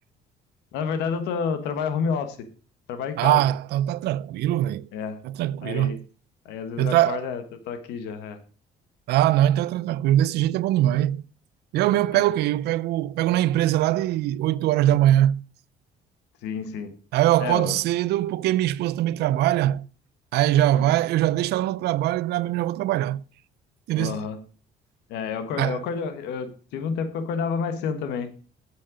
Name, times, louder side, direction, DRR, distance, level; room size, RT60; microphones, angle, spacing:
voice 1, 0.7-2.5 2.9-3.5 4.9-5.2 5.6-6.0 6.4-8.4 12.1-12.2 16.4-16.9 17.4-17.8 20.8-20.9 24.0-24.4 25.1-28.3, left 6 dB, 85° left, 1.4 m, -29 dB
voice 2, 3.2-4.9 5.2-6.0 6.8-7.3 9.1-11.2 11.7-15.4 17.1-19.9 20.3-23.2 23.9-24.2 25.6-25.8, right 13 dB, 75° right, 0.5 m, -22 dB
8.8 x 7.7 x 5.1 m
cardioid pair, 110°, 17 cm